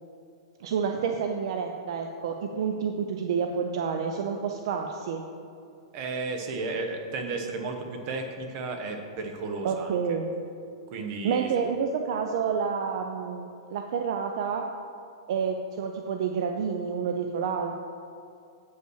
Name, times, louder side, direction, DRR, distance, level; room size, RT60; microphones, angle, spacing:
voice 1, 0.6-5.2 9.6-10.3 11.2-14.6 15.3-17.8, right 6 dB, 60° right, 4 dB, 0.5 m, -29 dB
voice 2, 5.9-10.2 10.9-11.5, right 3 dB, 35° right, 4 dB, 1.0 m, -33 dB
8.0 x 5.5 x 6.3 m, 2.5 s
hypercardioid pair, 155°, 3 cm